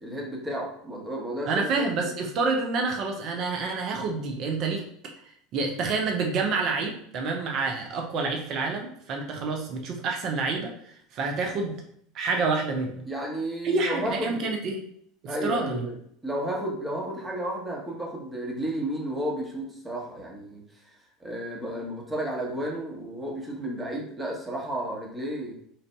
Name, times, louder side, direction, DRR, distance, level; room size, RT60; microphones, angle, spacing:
voice 1, 0.0-2.1 13.0-14.5 15.3-16.0 16.2-20.9 21.2-25.5, right 1 dB, 15° right, -1 dB, 1.1 m, -32 dB
voice 2, 1.5-4.8 5.5-11.8 12.1-13.0 13.6-14.8 15.2-15.8, right 4 dB, 50° right, 2 dB, 0.6 m, -28 dB
4.0 x 2.6 x 2.2 m, 0.66 s
hypercardioid pair, 80°, 0 cm